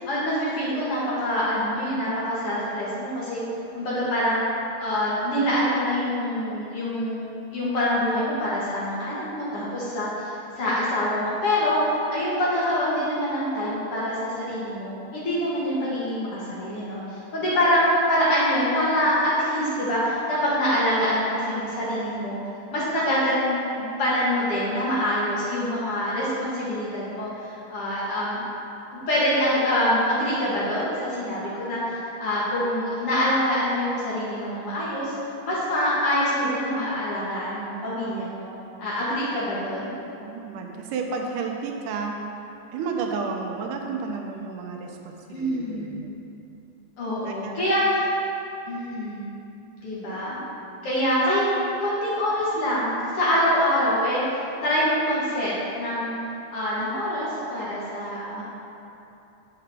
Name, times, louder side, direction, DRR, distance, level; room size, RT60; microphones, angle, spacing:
voice 1, 0.0-3.4 3.8-4.4 4.8-22.4 22.7-28.4 28.9-35.1 35.4-38.5 38.8-39.9 45.3-45.9 47.0-47.8 48.7-49.3 49.8-50.4 50.8-51.4 51.8-54.2 54.6-56.2 56.5-58.4, equal, 55° left, -8 dB, 1.9 m, -25 dB
voice 2, 40.1-42.2 42.7-46.1 47.3-47.6, right 5 dB, 85° right, 2 dB, 2.1 m, -32 dB
8.4 x 5.8 x 3.4 m, 2.8 s
omnidirectional pair, 3.6 m